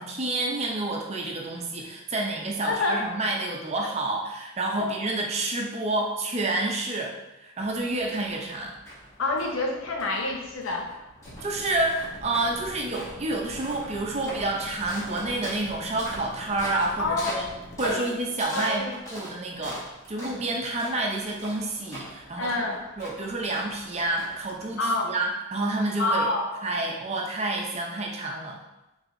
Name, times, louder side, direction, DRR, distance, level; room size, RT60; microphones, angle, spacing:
voice 1, 0.0-7.1 7.4-8.7 11.4-17.4 17.8-19.8 20.1-22.6 23.0-26.3 26.6-28.6, right 2 dB, 30° right, -1 dB, 0.5 m, -29 dB
voice 2, 2.7-3.0 4.8-4.9 9.2-10.9 17.0-17.4 17.8-18.1 18.5-18.9 22.4-22.8 24.8-25.1 26.0-26.6, left 2 dB, 80° left, 1 dB, 0.7 m, -27 dB
sound 1, 7.6-25.3, equal, 15° left, 1.0 m, -43 dB
sound 2, 11.2-17.9, equal, 50° left, 0.8 m, -44 dB
4.3 x 3.3 x 2.6 m, 0.96 s
head